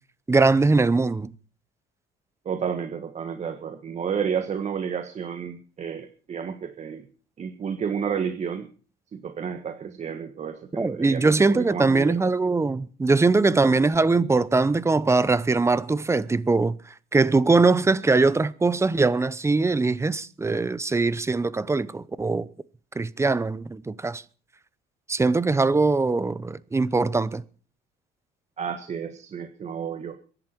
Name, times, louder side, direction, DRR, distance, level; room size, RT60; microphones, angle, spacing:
voice 1, 0.3-1.3 10.8-16.8 17.1-22.5 23.0-24.2 25.1-27.4, right 3 dB, 15° right, 0.8 m, -21 dB
voice 2, 2.4-7.0 7.4-8.7 9.1-12.2 28.6-30.2, right 7 dB, 40° right, 1.5 m, -31 dB
23.0 x 11.0 x 4.5 m
cardioid pair, 110°, 17 cm